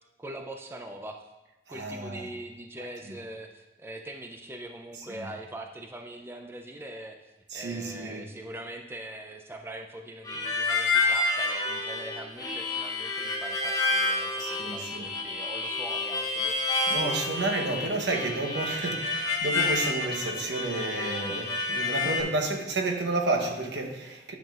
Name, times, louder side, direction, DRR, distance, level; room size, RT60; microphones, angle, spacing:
voice 1, 0.2-1.2 1.7-16.7, right 1 dB, 15° right, 0.4 m, -42 dB
voice 2, 1.7-2.3 3.1-3.2 5.1-5.3 7.5-8.2 14.4-15.1 16.9-24.3, right 2 dB, 85° right, 1.0 m, -31 dB
Harmonica, 10.3-22.2, left 3 dB, 20° left, 0.8 m, -29 dB
10.5 x 7.2 x 2.4 m
head